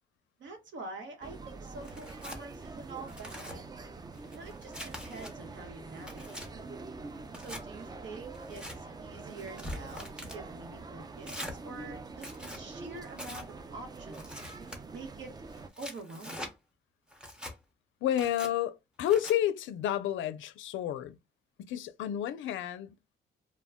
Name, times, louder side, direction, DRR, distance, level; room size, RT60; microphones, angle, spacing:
voice 1, 0.4-3.7 4.3-6.5 7.4-11.3 11.6-14.3 14.9-15.3 15.8-16.5, right 3 dB, 70° right, 1.0 m, -46 dB
sound 1, 1.2-15.7, right 3 dB, 20° right, 0.4 m, -45 dB
Tearing, 1.8-2.4 3.0-3.6 4.1-5.3 5.8-6.5 7.3-7.6 8.3-8.8 9.4-10.4 11.2-11.6 12.1-12.6 13.1-13.5 14.1-14.8 15.5-16.5 17.1-17.5 18.1-18.5 19.1-19.3, left 1 dB, 5° right, 0.8 m, -43 dB
voice 2, 18.0-21.2 21.6-23.2, left 11 dB, 75° left, 0.4 m, -31 dB
2.1 x 2.1 x 3.5 m
cardioid pair, 90°, 20 cm